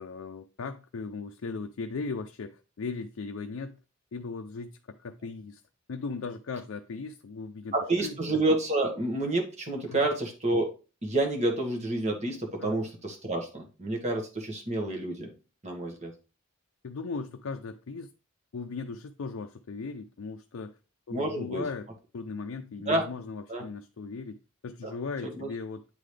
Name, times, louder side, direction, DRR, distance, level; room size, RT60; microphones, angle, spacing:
voice 1, 0.0-3.8 4.1-5.6 5.9-7.7 8.0-8.1 9.9-10.0 12.6-12.8 16.8-18.1 18.5-20.8 21.1-21.9 22.1-25.9, left 4 dB, 70° left, 0.5 m, -38 dB
voice 2, 7.7-10.7 11.0-15.3 15.6-16.1 21.1-21.6 22.9-23.1 23.5-23.7 24.8-24.9 25.2-25.5, right 2 dB, 35° right, 1.5 m, -29 dB
9.0 x 3.8 x 3.3 m
head